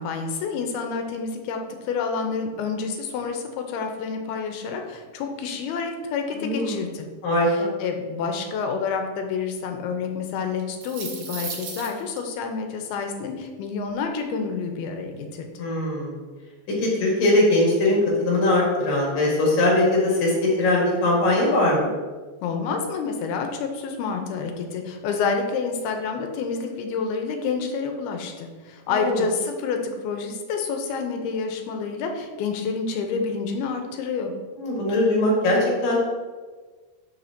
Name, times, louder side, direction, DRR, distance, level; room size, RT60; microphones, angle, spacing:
voice 1, 0.0-1.6 1.9-7.1 7.5-15.6 22.4-29.8 30.0-34.3, left 5 dB, 85° left, 4 dB, 2.7 m, -28 dB
voice 2, 6.3-6.9 7.2-7.7 15.6-16.2 16.8-21.9 28.9-29.2 34.5-36.0, left 1 dB, 65° left, -3 dB, 3.4 m, -21 dB
sound 1, 10.6-12.2, right 4 dB, 60° right, 2.0 m, -35 dB
11.0 x 5.6 x 2.8 m, 1.4 s
omnidirectional pair, 4.5 m